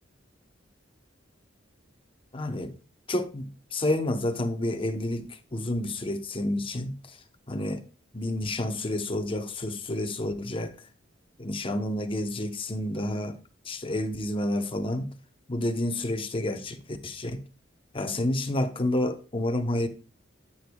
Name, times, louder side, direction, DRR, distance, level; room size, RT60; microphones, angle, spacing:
voice 1, 2.3-2.7 3.1-7.2 7.5-7.8 8.1-10.7 11.4-13.4 13.7-15.1 15.5-17.4 17.9-19.9, left 1 dB, 30° left, 0.8 m, -29 dB
10.0 x 7.9 x 2.3 m
head